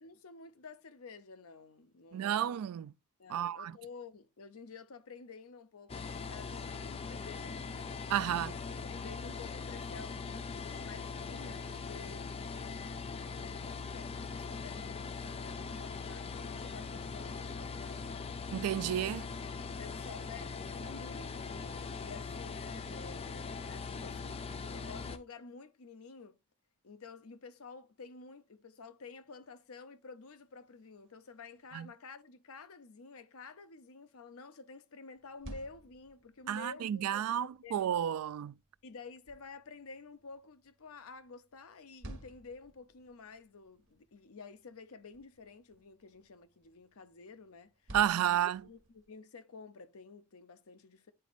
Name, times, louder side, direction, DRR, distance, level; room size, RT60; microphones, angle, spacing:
voice 1, 0.0-2.5 3.2-7.9 8.3-12.3 13.2-18.3 19.8-26.4 26.8-37.9 38.8-51.1, left 4 dB, 75° left, 0.7 m, -51 dB
voice 2, 2.1-2.9 3.3-3.7 8.1-8.5 18.5-19.3 31.7-31.9 36.5-38.5 47.9-48.6, right 10 dB, 80° right, 0.3 m, -31 dB
sound 1, 5.9-25.2, left 5 dB, 25° left, 0.4 m, -41 dB
sound 2, 35.1-49.1, right 1 dB, 55° right, 1.4 m, -55 dB
9.7 x 4.1 x 2.5 m
head